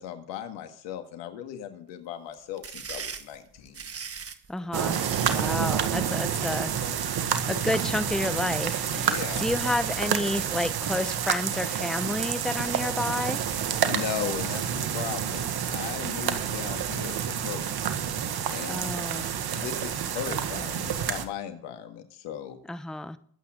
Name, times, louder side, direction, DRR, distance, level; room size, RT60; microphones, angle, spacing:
voice 1, 0.0-3.9 8.9-9.4 13.8-17.7 18.5-18.7 19.5-22.6, left 10 dB, 75° left, 7 dB, 2.1 m, -37 dB
sound 1, 2.3-5.6, right 6 dB, 30° right, 1.5 m, -38 dB
voice 2, 4.5-5.0 5.3-13.4 18.7-19.3 22.7-23.2, left 2 dB, ahead, 12 dB, 0.9 m, -30 dB
sound 2, 4.7-21.2, right 8 dB, 55° right, 1.8 m, -29 dB
22.5 x 8.7 x 3.8 m, 0.62 s
hypercardioid pair, 55°, 44 cm